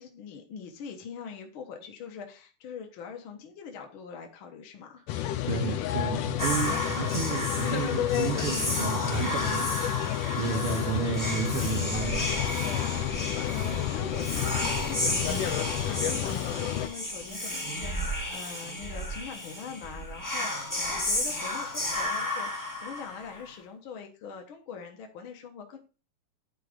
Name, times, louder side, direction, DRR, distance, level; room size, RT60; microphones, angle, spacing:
voice 1, 0.0-5.0 12.6-15.6 15.8-25.8, left 6 dB, 55° left, 1.6 m, -43 dB
sound 1, 5.1-16.9, left 12 dB, 90° left, 2.4 m, -30 dB
voice 2, 5.4-9.9 10.4-12.6 13.3-13.4, right 9 dB, 75° right, 1.2 m, -32 dB
Whispering, 6.4-23.5, left 1 dB, 15° left, 0.6 m, -33 dB
10.0 x 4.2 x 5.1 m
omnidirectional pair, 3.6 m